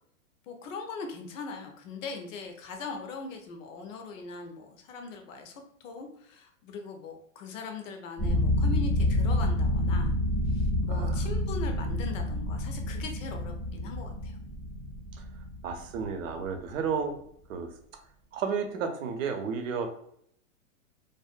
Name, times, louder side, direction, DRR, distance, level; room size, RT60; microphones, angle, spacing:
voice 1, 0.5-10.1 10.5-14.4, left 4 dB, 65° left, 4 dB, 0.7 m, -40 dB
sound 1, 8.2-16.6, left 1 dB, 10° left, 0.4 m, -28 dB
voice 2, 10.9-11.3 15.1-15.2 15.6-17.2 17.5-17.7 18.3-19.9, right 6 dB, 70° right, 5 dB, 0.6 m, -32 dB
2.5 x 2.1 x 2.4 m, 0.68 s
hypercardioid pair, 135°, 41 cm